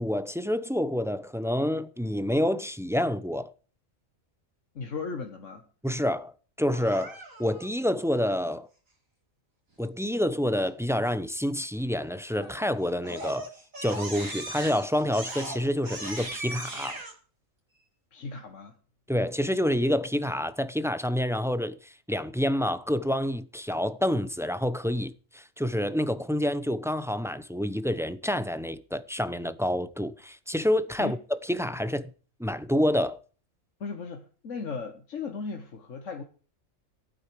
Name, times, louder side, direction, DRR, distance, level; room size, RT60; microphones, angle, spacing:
voice 1, 0.0-3.5 5.8-8.7 9.8-13.5 13.8-17.0 19.1-31.2 31.5-32.1 32.4-33.2, equal, 5° right, 0.6 m, -28 dB
voice 2, 4.8-5.6 18.1-18.7 31.0-31.2 33.8-36.2, left 4 dB, 70° left, 1.7 m, -36 dB
Crying sobbing, 6.7-7.7 12.3-12.7 13.0-17.1, right 1 dB, 90° right, 4.9 m, -38 dB
15.5 x 9.6 x 4.7 m
omnidirectional pair, 1.3 m